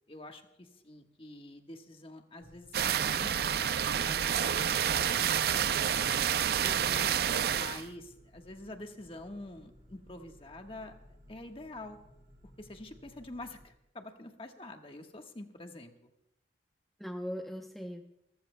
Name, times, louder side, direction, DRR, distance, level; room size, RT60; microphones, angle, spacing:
voice 1, 0.1-5.6 5.9-6.3 7.5-10.9 11.3-12.0 12.6-16.1, left 2 dB, 30° left, 4 dB, 1.3 m, -47 dB
sound 1, 2.4-13.7, left 1 dB, 40° right, 2.4 m, -58 dB
sound 2, 2.7-7.8, right 8 dB, 60° right, 0.4 m, -29 dB
voice 2, 6.6-7.2 17.0-18.0, equal, ahead, 2 dB, 0.7 m, -40 dB
27.0 x 14.0 x 2.2 m, 0.87 s
head